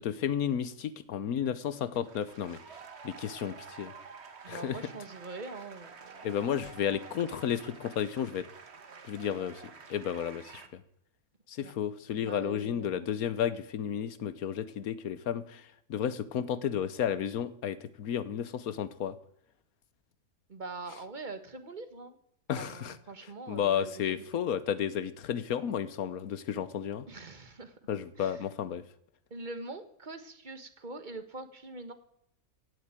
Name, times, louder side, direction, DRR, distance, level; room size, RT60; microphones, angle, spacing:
voice 1, 0.0-2.6 3.0-3.9 4.5-4.8 6.2-8.4 9.1-9.6 9.9-10.8 11.5-15.6 15.9-19.1 22.5-22.9 23.5-27.1 27.9-28.8, left 9 dB, 80° left, 15 dB, 1.4 m, -32 dB
sound 1, 1.8-10.7, right 5 dB, 50° right, 1.5 m, -50 dB
voice 2, 4.4-6.5 11.6-11.7 12.2-13.1 20.5-22.2 22.6-24.2 27.1-27.7 28.2-28.4 29.3-31.9, right 3 dB, 35° right, 10 dB, 1.5 m, -43 dB
16.5 x 8.0 x 9.0 m, 0.74 s
omnidirectional pair, 1.5 m